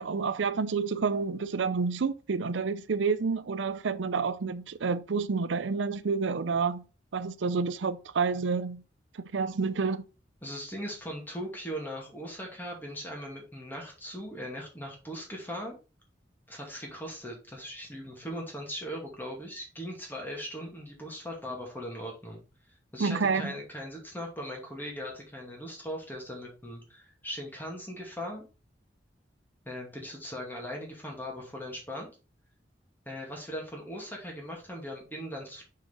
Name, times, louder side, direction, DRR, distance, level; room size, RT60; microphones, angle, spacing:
voice 1, 0.0-6.8 7.1-8.8 9.3-10.0 23.0-23.5, right 5 dB, 90° right, 0.5 m, -29 dB
voice 2, 10.4-15.8 16.5-22.4 22.9-28.4 29.7-32.1 33.1-35.6, equal, 10° left, 2.4 m, -39 dB
6.2 x 5.7 x 3.9 m
head